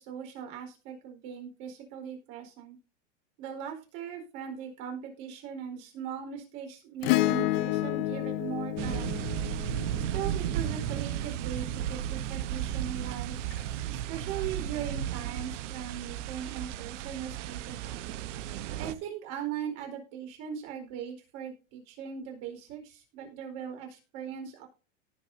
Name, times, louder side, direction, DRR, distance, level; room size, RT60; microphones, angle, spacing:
voice 1, 0.0-2.8 3.4-9.4 10.0-13.4 13.9-18.1 18.8-24.7, right 8 dB, 45° right, 3 dB, 4.5 m, -39 dB
Acoustic guitar / Strum, 7.0-11.6 13.5-13.6, left 17 dB, 50° left, 0.6 m, -31 dB
sound 1, 8.8-18.9, right 11 dB, 65° right, 1.1 m, -34 dB
18.5 x 6.4 x 2.7 m, 0.34 s
supercardioid pair, 140°, 38 cm